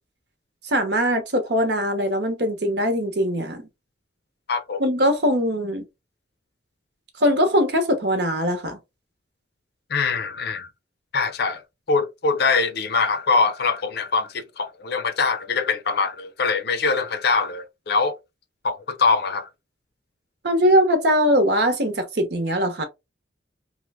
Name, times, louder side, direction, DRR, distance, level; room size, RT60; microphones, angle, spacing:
voice 1, 0.7-3.6 4.8-5.8 7.2-8.8 20.4-22.8, equal, 60° right, 0.9 m, -21 dB
voice 2, 4.5-4.8 9.9-10.7 11.1-11.6 11.9-18.2 18.6-19.5, left 4 dB, 60° left, 0.5 m, -23 dB
3.0 x 2.1 x 3.4 m
head